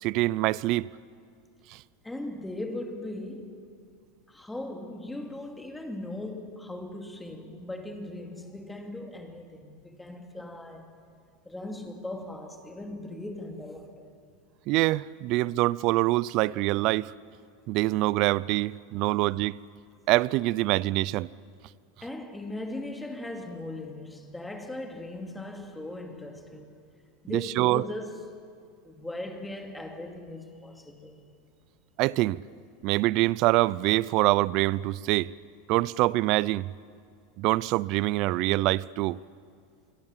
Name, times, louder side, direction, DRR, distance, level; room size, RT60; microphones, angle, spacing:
voice 1, 0.0-0.9 1.7-1.8 14.7-17.1 17.7-19.6 20.1-21.3 27.3-27.8 32.0-32.4 32.8-35.3 35.7-36.7 37.4-39.2, right 19 dB, 50° right, 0.5 m, -25 dB
voice 2, 2.0-3.7 4.3-10.9 11.4-14.1 22.0-26.7 27.2-28.3 28.8-31.2, left 1 dB, 5° left, 2.6 m, -39 dB
26.5 x 23.0 x 7.5 m
supercardioid pair, 130°, 0 cm